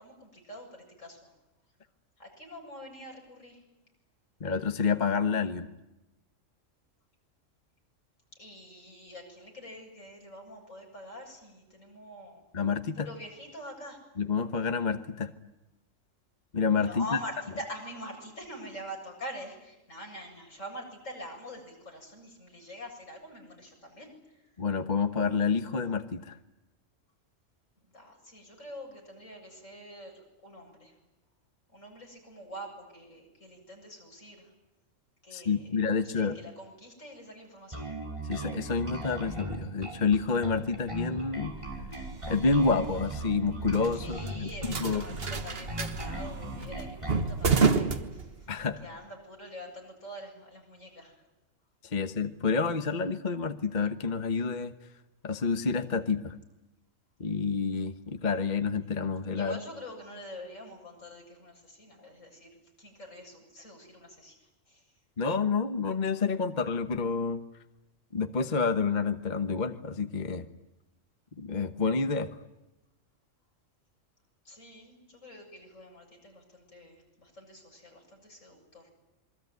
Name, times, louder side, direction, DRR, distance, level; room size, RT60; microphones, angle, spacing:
voice 1, 0.0-1.3 2.2-3.6 8.4-12.4 12.9-14.0 16.8-24.5 27.8-30.9 31.7-34.5 35.2-37.9 44.0-48.5 48.8-51.2 59.4-64.9 74.4-78.9, equal, 80° left, 1 dB, 8.0 m, -45 dB
voice 2, 4.4-5.7 12.5-13.1 14.2-15.3 16.5-17.0 24.6-26.4 35.3-36.3 38.2-41.6 42.3-44.5 44.8-45.0 48.5-48.8 51.8-54.7 55.2-56.4 57.2-59.6 65.2-67.4 68.1-70.5 71.4-72.4, left 5 dB, 35° left, 8 dB, 1.2 m, -28 dB
Bass guitar, 37.7-47.3, right 2 dB, 25° right, 5.7 m, -38 dB
sound 1, 41.4-48.8, right 4 dB, 50° right, 1.6 m, -31 dB
27.5 x 23.0 x 9.4 m, 0.98 s
omnidirectional pair, 1.3 m